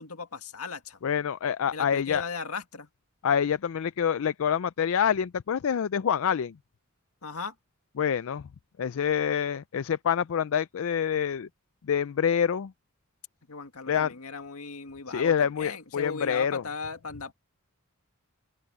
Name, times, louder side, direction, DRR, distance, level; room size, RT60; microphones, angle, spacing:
voice 1, 0.0-1.0 1.7-2.9 7.2-7.5 13.5-17.3, left 4 dB, 85° left, 1.9 m, -37 dB
voice 2, 1.0-2.2 3.2-6.5 8.0-8.5 8.8-11.5 11.9-12.7 13.9-14.1 15.1-16.6, left 8 dB, 65° left, 0.4 m, -26 dB
open air
head